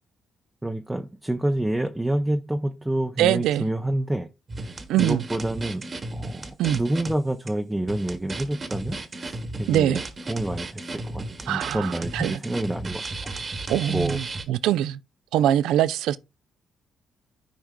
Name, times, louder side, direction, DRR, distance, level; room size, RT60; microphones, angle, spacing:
voice 1, 0.6-4.3 4.6-4.7 5.0-5.9 6.1-10.0 10.3-13.0 13.9-14.2, right 1 dB, 10° right, 0.5 m, -28 dB
voice 2, 3.2-3.7 4.9-5.2 6.6-6.8 9.7-10.0 11.5-12.4 13.7-15.0 15.3-16.2, right 11 dB, 85° right, 0.3 m, -23 dB
sound 1, 4.5-7.1 7.5-7.6 7.9-14.4, right 2 dB, 35° right, 1.1 m, -34 dB
14.0 x 4.7 x 2.2 m
cardioid pair, 90°, 0 cm